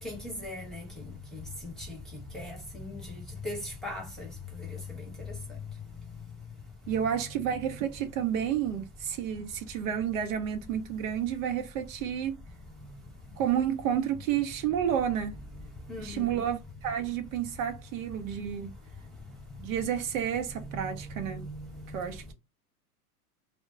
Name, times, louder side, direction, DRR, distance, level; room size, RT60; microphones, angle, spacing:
voice 1, 0.0-0.9 1.3-2.0 2.3-3.1 3.4-4.3 4.6-4.8 15.9-16.5 21.4-21.5, left 2 dB, ahead, 1.0 m, -38 dB
voice 2, 6.9-12.4 13.4-15.4 16.0-18.7 19.6-21.4 21.9-22.3, right 9 dB, 60° right, 0.7 m, -30 dB
2.1 x 2.0 x 3.7 m
hypercardioid pair, 110°, 45 cm